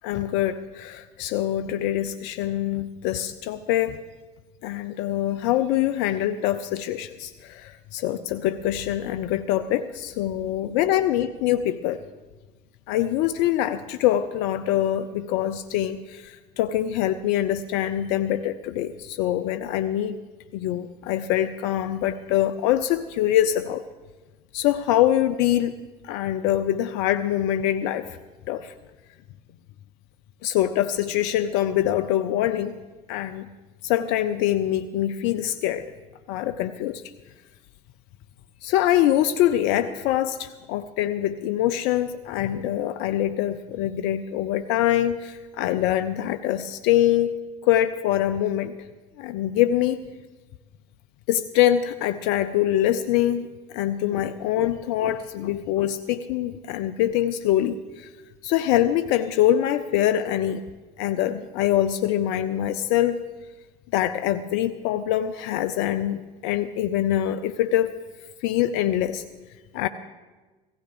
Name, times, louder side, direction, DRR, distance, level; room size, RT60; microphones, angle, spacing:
voice 1, 0.0-4.0 4.6-12.0 12.9-20.2 20.5-23.8 24.5-25.7 26.0-28.1 28.5-28.7 30.4-32.7 33.1-33.5 33.8-35.9 36.3-37.0 38.6-47.3 47.6-48.7 49.2-50.0 51.3-53.5 53.7-58.1 58.4-60.6 61.0-63.2 63.9-68.0 68.4-69.2 69.7-69.9, left 12 dB, 65° left, 11 dB, 0.5 m, -24 dB
16.5 x 15.5 x 3.5 m, 1.3 s
hypercardioid pair, 65°, 20 cm